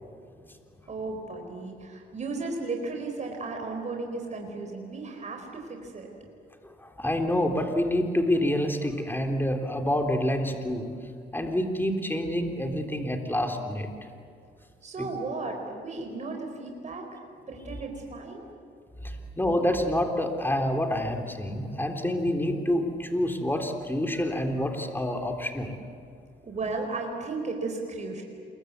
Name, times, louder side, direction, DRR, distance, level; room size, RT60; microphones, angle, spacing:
voice 1, 0.9-6.1 14.8-18.4 26.4-28.2, right 3 dB, 35° right, 2 dB, 4.4 m, -35 dB
voice 2, 6.6-10.9 11.3-13.9 19.0-25.7, left 1 dB, 10° left, 4 dB, 3.5 m, -27 dB
27.5 x 23.0 x 8.2 m, 2.5 s
cardioid pair, 90°, 20 cm